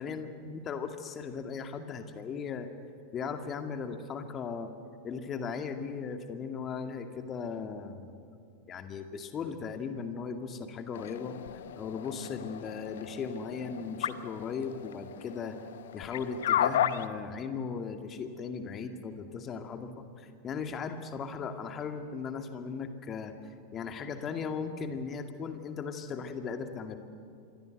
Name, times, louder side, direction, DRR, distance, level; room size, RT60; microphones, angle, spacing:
voice 1, 0.0-2.7 3.1-4.7 5.0-8.3 8.7-15.6 15.9-23.3 23.7-27.0, left 5 dB, 25° left, 7 dB, 2.3 m, -37 dB
sound 1, 10.9-17.1, left 10 dB, 60° left, 0.8 m, -33 dB
27.0 x 22.5 x 8.1 m, 2.5 s
figure-of-eight pair, 90°, 0 cm